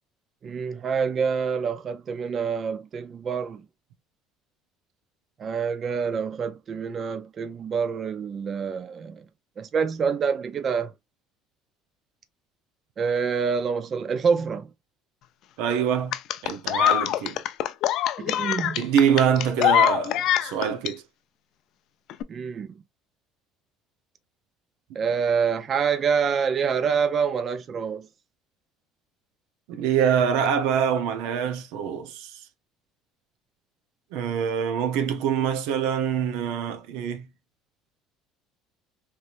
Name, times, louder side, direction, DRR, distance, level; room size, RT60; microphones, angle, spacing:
voice 1, 0.4-3.6 5.4-9.2 9.6-10.9 13.0-14.7 18.2-18.9 22.3-22.7 25.0-28.1, right 6 dB, 35° right, 0.4 m, -26 dB
voice 2, 15.6-16.2 16.4-17.4 18.8-21.0 29.7-32.4 34.1-37.3, right 8 dB, 80° right, 0.6 m, -25 dB
sound 1, 16.1-20.9 22.1-22.2, left 12 dB, 55° left, 0.4 m, -23 dB
3.2 x 3.0 x 2.5 m
cardioid pair, 135°, 0 cm